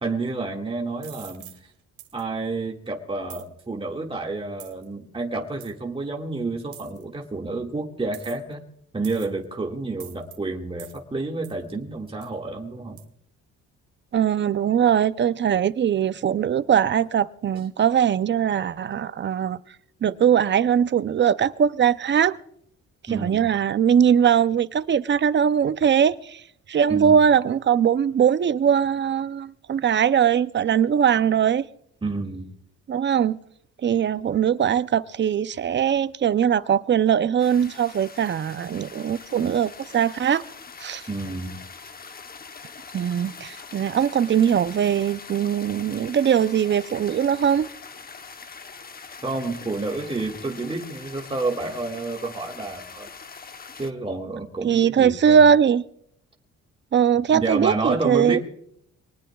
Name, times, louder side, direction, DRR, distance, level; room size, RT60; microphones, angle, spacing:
voice 1, 0.0-1.7 2.1-8.6 8.9-13.0 23.1-23.5 26.9-27.2 32.0-32.5 41.1-41.6 49.2-53.1 53.8-55.4 57.1-58.4, right 3 dB, 20° right, 2.0 m, -29 dB
sound 1, 1.0-1.6 2.0-2.2 3.3-3.5 4.6-4.8 5.6-5.7 6.7-7.0 8.1-8.5 9.0-9.4 10.0-10.4 10.8-11.0 11.4-11.6 12.2-12.3 13.0-13.1, right 12 dB, 85° right, 1.8 m, -44 dB
voice 2, 14.1-19.6 20.0-22.4 23.1-26.4 26.7-31.6 32.9-33.4 33.8-40.4 40.8-41.0 42.9-47.7 54.6-55.8 56.9-58.4, right 8 dB, 40° right, 0.6 m, -21 dB
sound 2, 37.4-53.9, left 5 dB, 30° left, 1.0 m, -43 dB
24.5 x 19.5 x 2.4 m
cardioid pair, 90°, 30 cm